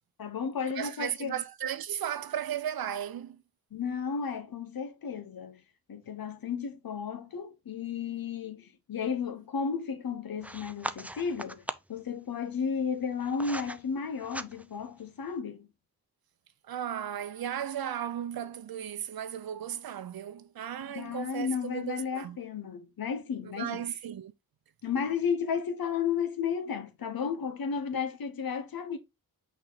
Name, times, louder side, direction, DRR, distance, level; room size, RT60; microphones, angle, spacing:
voice 1, 0.2-1.3 3.7-5.6 5.9-11.6 11.9-15.7 20.8-23.8 24.8-29.0, left 6 dB, 70° left, 1.2 m, -33 dB
voice 2, 0.7-3.4 16.6-22.4 23.4-24.3, right 10 dB, 70° right, 0.7 m, -35 dB
sound 1, 10.4-12.0 12.8-13.8 14.2-14.8, right 1 dB, 5° right, 0.6 m, -39 dB
6.0 x 4.1 x 4.0 m
cardioid pair, 60°, 37 cm